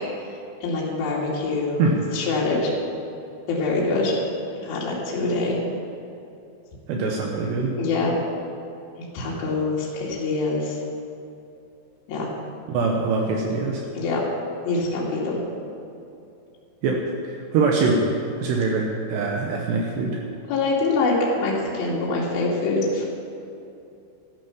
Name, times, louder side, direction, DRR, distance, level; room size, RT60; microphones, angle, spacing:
voice 1, 0.6-1.9 2.1-2.7 3.5-4.3 4.6-5.6 7.8-8.2 9.0-10.8 12.1-12.3 14.0-14.2 14.6-15.4 20.5-23.1, left 3 dB, 55° left, -5 dB, 3.8 m, -24 dB
voice 2, 6.9-7.8 12.7-13.8 16.8-18.0 18.4-20.2, right 4 dB, 70° right, 0 dB, 3.1 m, -23 dB
13.5 x 11.5 x 7.1 m, 2.7 s
omnidirectional pair, 5.4 m